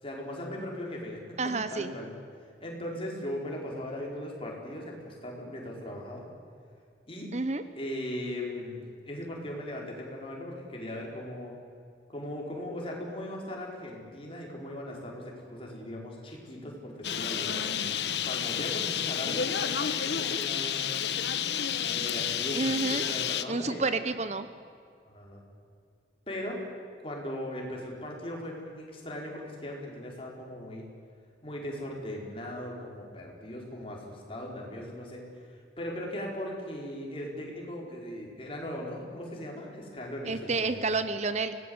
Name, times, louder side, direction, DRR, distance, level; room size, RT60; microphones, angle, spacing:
voice 1, 0.0-2.1 2.6-6.3 7.1-7.3 7.7-11.5 12.1-17.8 18.2-21.0 21.8-23.8 25.1-25.4 26.3-26.6 27.0-30.9 31.4-40.8, left 1 dB, 30° left, -1 dB, 4.9 m, -38 dB
voice 2, 1.4-1.9 7.3-7.6 22.5-23.0 23.5-24.5 40.3-41.6, right 3 dB, 40° right, 11 dB, 0.9 m, -29 dB
Bird, 17.0-23.4, left 8 dB, 75° left, 1.0 m, -30 dB
25.0 x 18.5 x 8.1 m, 2.3 s
head